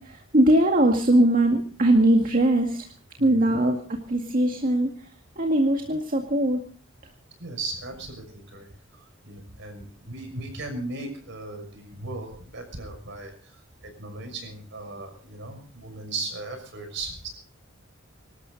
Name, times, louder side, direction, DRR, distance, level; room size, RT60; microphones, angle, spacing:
voice 1, 0.0-2.8 3.2-3.8 4.1-4.9 5.4-6.6, right 1 dB, 45° right, 2 dB, 2.1 m, -20 dB
voice 2, 3.2-3.6 7.4-17.3, right 2 dB, 65° right, 5 dB, 6.1 m, -37 dB
25.5 x 13.0 x 4.0 m, 0.43 s
head